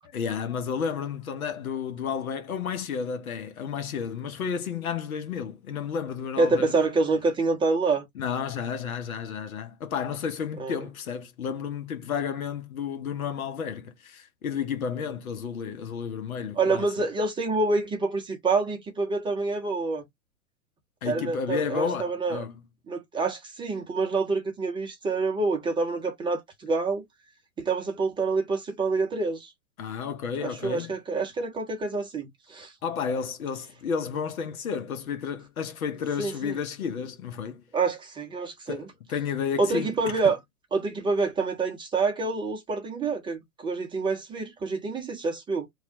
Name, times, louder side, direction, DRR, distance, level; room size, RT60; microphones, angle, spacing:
voice 1, 0.1-6.7 8.1-16.9 21.0-22.6 29.8-30.9 32.8-37.6 38.7-39.9, left 6 dB, 70° left, 0.9 m, -32 dB
voice 2, 6.4-8.0 10.6-10.8 16.6-20.0 21.0-22.4 22.9-27.0 27.6-29.5 30.4-32.7 36.2-36.5 37.7-38.9 39.6-40.4 40.7-45.7, right 3 dB, 10° right, 0.7 m, -27 dB
3.1 x 2.4 x 2.9 m
figure-of-eight pair, 105°, 44 cm